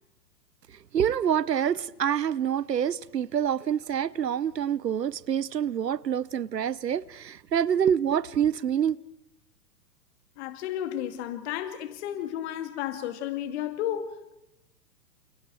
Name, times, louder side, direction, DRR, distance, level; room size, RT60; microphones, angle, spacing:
voice 1, 0.9-9.0, right 9 dB, 75° right, 0.9 m, -26 dB
voice 2, 10.4-14.3, left 11 dB, 40° left, 2.3 m, -33 dB
29.5 x 29.0 x 4.7 m
figure-of-eight pair, 110°, 50 cm